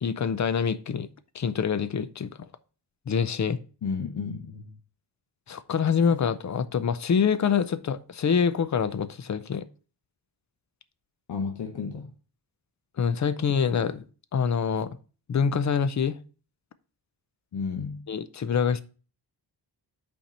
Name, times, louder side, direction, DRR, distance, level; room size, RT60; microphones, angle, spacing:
voice 1, 0.0-1.1 1.3-2.5 3.1-3.6 5.5-9.6 13.0-14.0 14.3-15.0 15.3-16.2 18.1-18.8, left 6 dB, 45° left, 0.5 m, -25 dB
voice 2, 3.8-4.8 11.3-12.1 17.5-18.1, left 5 dB, 65° left, 0.9 m, -32 dB
5.6 x 4.4 x 5.4 m
wide cardioid pair, 155°, 42 cm